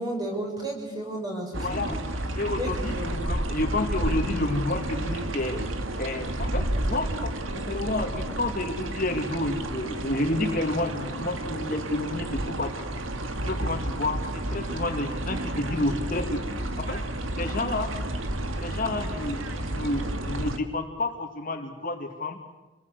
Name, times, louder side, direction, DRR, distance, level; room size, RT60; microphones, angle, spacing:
voice 1, 0.0-1.8 2.6-3.2, right 1 dB, 20° right, 0 dB, 6.9 m, -33 dB
sound 1, 1.5-20.6, right 1 dB, 80° right, 2.0 m, -31 dB
voice 2, 1.6-2.0 2.4-5.6 6.0-12.7 13.4-16.4 16.8-17.0 17.4-17.9 18.6-19.4 19.7-22.4, left 2 dB, 45° left, 3 dB, 2.3 m, -30 dB
27.5 x 20.5 x 8.0 m, 1.1 s
head